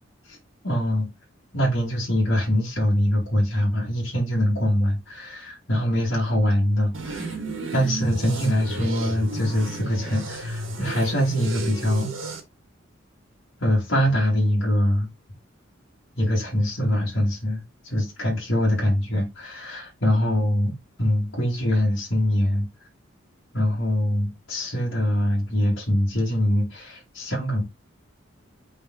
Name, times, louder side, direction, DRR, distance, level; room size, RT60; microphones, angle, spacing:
voice 1, 0.6-1.1 1.5-7.4 7.7-12.1 13.6-15.1 16.2-20.7 21.0-22.7 23.5-27.6, left 1 dB, 60° left, 2.6 m, -23 dB
sound 1, 6.9-12.4, right 2 dB, 80° right, 2.4 m, -32 dB
5.4 x 5.3 x 3.9 m
head